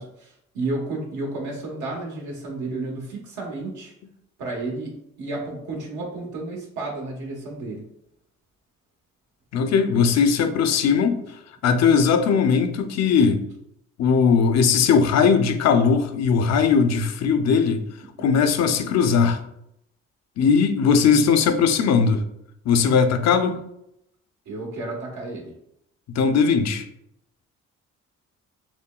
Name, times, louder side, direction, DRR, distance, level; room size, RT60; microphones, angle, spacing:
voice 1, 0.0-3.9 4.4-7.8 22.9-23.3 24.5-25.5, right 2 dB, 75° right, 1.2 m, -32 dB
voice 2, 9.5-11.2 11.6-13.4 14.0-17.8 18.2-19.4 20.4-22.2 22.7-23.6 26.1-26.8, left 6 dB, 60° left, 0.5 m, -19 dB
5.7 x 2.2 x 2.3 m
cardioid pair, 90°, 30 cm